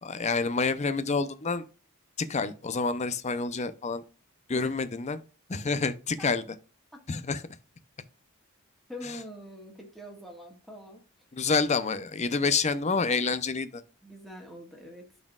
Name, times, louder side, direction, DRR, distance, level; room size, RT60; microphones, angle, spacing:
voice 1, 0.0-1.6 2.3-4.0 4.5-5.2 5.5-6.4 7.1-7.4 11.3-13.8, left 4 dB, 30° left, 0.6 m, -28 dB
voice 2, 8.9-11.0 14.0-15.1, equal, ahead, 1.6 m, -44 dB
12.0 x 4.2 x 2.4 m
head